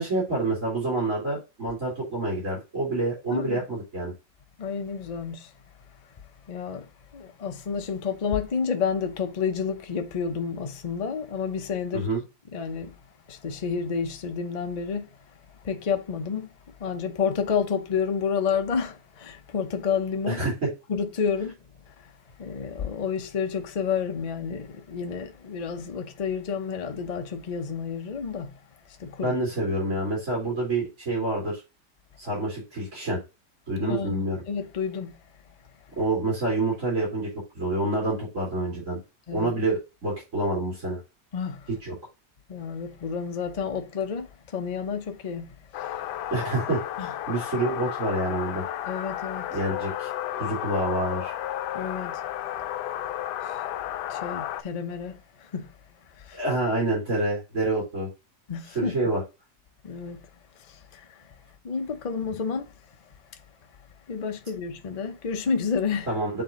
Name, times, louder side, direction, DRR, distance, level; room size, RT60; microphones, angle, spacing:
voice 1, 0.0-4.1 11.9-12.2 20.3-20.5 29.2-31.6 32.2-33.2 33.7-34.4 36.0-37.3 37.5-39.0 39.3-41.0 41.8-41.9 46.3-48.6 49.5-50.1 50.4-51.3 56.3-58.1 58.7-59.2 66.1-66.4, right 2 dB, 40° right, 3.3 m, -27 dB
voice 2, 3.3-3.6 4.6-5.5 6.5-12.1 12.5-13.0 13.3-15.1 15.6-20.4 20.9-21.5 21.9-22.1 22.4-28.6 28.9-29.3 33.8-35.2 39.3-39.5 41.3-41.7 42.5-46.0 47.0-47.1 48.9-49.6 51.7-52.2 53.4-53.6 54.1-55.7 56.2-56.4 58.5-59.0 59.8-60.3 60.6-61.3 61.6-62.7 64.1-66.1, left 6 dB, 50° left, 0.4 m, -30 dB
sound 1, 45.7-54.6, left 12 dB, 75° left, 1.1 m, -33 dB
7.3 x 3.7 x 3.8 m
omnidirectional pair, 1.9 m